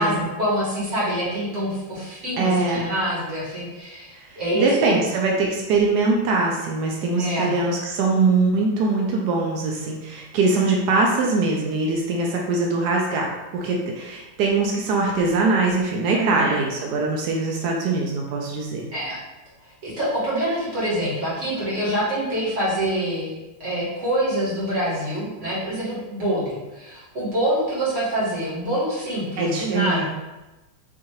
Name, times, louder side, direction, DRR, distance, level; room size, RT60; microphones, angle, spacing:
voice 1, 0.0-5.1 7.1-7.5 16.1-16.6 18.9-19.2 19.8-30.1, right 1 dB, 35° right, -9 dB, 1.8 m, -26 dB
voice 2, 2.4-2.9 4.3-18.9 29.4-30.1, right 3 dB, 80° right, -1 dB, 0.9 m, -22 dB
4.8 x 2.7 x 2.9 m, 1.1 s
omnidirectional pair, 2.3 m